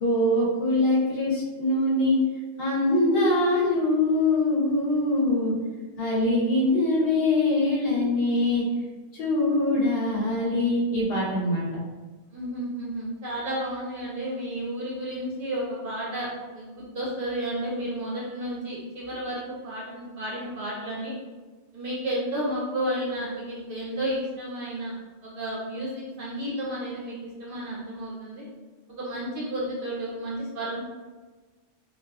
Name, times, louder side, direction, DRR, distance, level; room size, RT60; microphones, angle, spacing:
voice 1, 0.0-2.2 2.6-5.5 6.0-8.6 9.1-11.7, left 2 dB, 60° left, -5 dB, 0.8 m, -23 dB
voice 2, 12.3-16.3 16.5-21.1 21.7-24.9 25.2-28.4 29.0-30.8, right 1 dB, 55° right, -6 dB, 0.7 m, -32 dB
2.6 x 2.2 x 2.3 m, 1.3 s
omnidirectional pair, 1.3 m